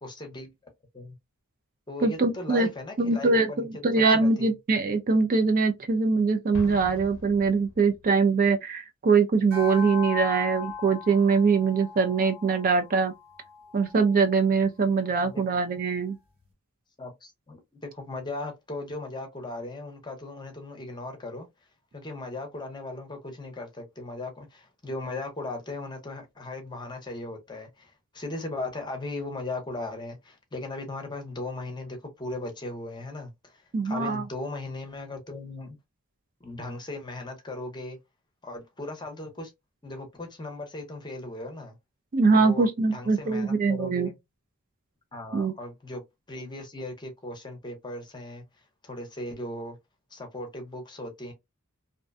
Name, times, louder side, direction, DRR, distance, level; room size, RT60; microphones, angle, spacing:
voice 1, 0.0-0.5 0.9-1.2 1.9-3.7 3.9-4.5 15.2-15.6 17.0-21.5 21.9-35.8 36.4-38.0 38.4-39.5 39.8-41.8 42.3-44.2 45.1-46.0 46.3-48.4 48.8-49.8 50.1-51.3, left 2 dB, 20° left, 0.7 m, -37 dB
voice 2, 2.0-2.7 3.0-13.1 13.7-16.2 33.7-34.2 42.1-44.1 45.3-45.5, right 4 dB, 40° right, 0.4 m, -23 dB
Explosion, 6.5-8.3, left 2 dB, 65° left, 0.5 m, -42 dB
sound 1, 9.5-14.1, left 6 dB, 65° right, 1.2 m, -38 dB
2.6 x 2.1 x 2.4 m
head